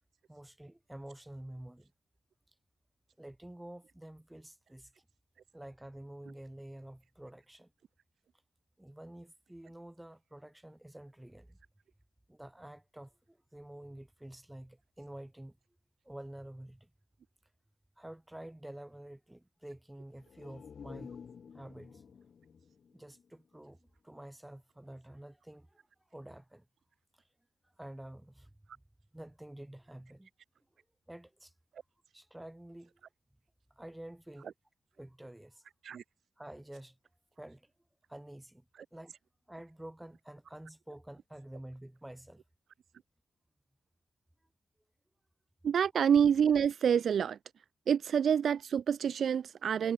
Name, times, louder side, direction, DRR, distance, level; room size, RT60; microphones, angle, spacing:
voice 1, 0.3-1.9 3.2-5.0 5.5-7.7 8.8-11.6 12.3-15.6 16.0-16.9 18.0-21.2 21.5-22.0 22.9-23.8 24.0-26.7 27.1-27.2 27.8-28.5 29.1-30.3 31.1-31.5 32.1-33.0 33.7-34.5 35.0-35.6 36.4-37.0 37.4-37.7 38.1-38.6 38.9-39.2 39.5-42.4, right 1 dB, 10° right, 6.3 m, -49 dB
sound 1, 20.1-23.9 24.2-24.3, left 6 dB, 60° left, 6.3 m, -51 dB
voice 2, 45.6-47.4 47.9-49.9, right 8 dB, 70° right, 0.6 m, -27 dB
cardioid pair, 85°, 0 cm